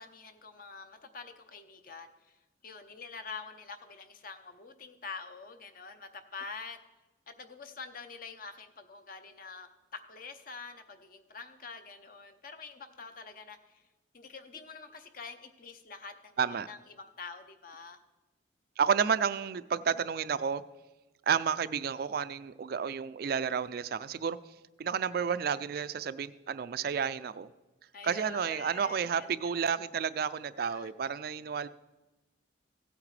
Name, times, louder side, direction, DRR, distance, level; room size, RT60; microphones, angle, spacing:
voice 1, 0.0-2.4 2.6-6.8 7.3-13.8 14.1-18.0 27.9-29.8 30.6-30.9, left 4 dB, 45° left, 8 dB, 0.8 m, -46 dB
voice 2, 18.8-20.6 21.3-24.4 24.8-27.5 28.0-31.7, right 7 dB, 50° right, 14 dB, 0.3 m, -31 dB
16.0 x 8.6 x 3.3 m, 1.1 s
head